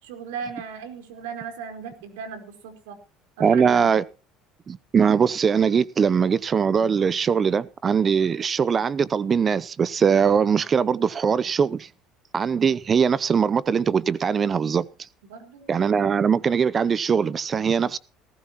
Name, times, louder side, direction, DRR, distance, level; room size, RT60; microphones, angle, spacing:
voice 1, 0.0-3.0 3.4-3.9 15.3-15.7, right 6 dB, 85° right, 4.4 m, -37 dB
voice 2, 3.4-4.0 4.7-11.9 12.3-14.9 15.7-18.0, right 6 dB, 35° right, 0.7 m, -21 dB
18.5 x 15.5 x 3.0 m
supercardioid pair, 85°, 0 cm